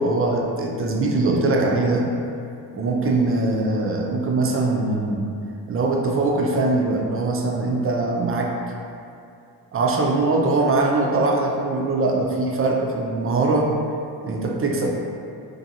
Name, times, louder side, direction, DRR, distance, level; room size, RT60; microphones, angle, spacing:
voice 1, 0.0-2.1 2.7-5.3 5.7-8.5 9.7-13.7 14.2-14.9, right 2 dB, 30° right, 0 dB, 0.5 m, -22 dB
2.6 x 2.5 x 2.7 m, 2.5 s
supercardioid pair, 50°, 45 cm